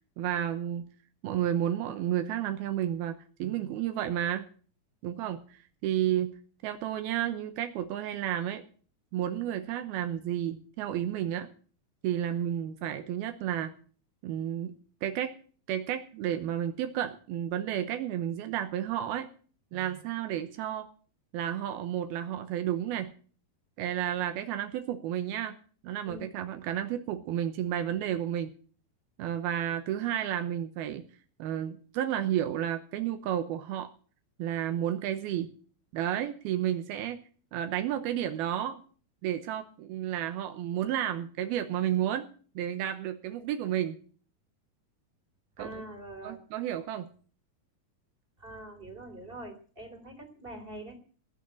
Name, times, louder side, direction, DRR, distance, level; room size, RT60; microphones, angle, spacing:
voice 1, 0.2-0.9 1.2-4.5 5.0-6.3 6.6-8.6 9.1-11.5 12.0-13.7 14.2-14.7 15.0-15.4 15.7-19.3 19.7-20.9 21.3-23.1 23.8-25.6 25.8-28.5 29.2-31.0 31.4-33.9 34.4-35.5 35.9-37.2 37.5-38.8 39.2-42.3 42.6-44.0 45.6-45.8 46.2-47.1, right 11 dB, 80° right, 8 dB, 2.8 m, -31 dB
voice 2, 45.6-46.4 48.4-51.0, right 1 dB, 15° right, 4 dB, 2.3 m, -44 dB
18.0 x 6.3 x 8.6 m, 0.43 s
omnidirectional pair, 4.4 m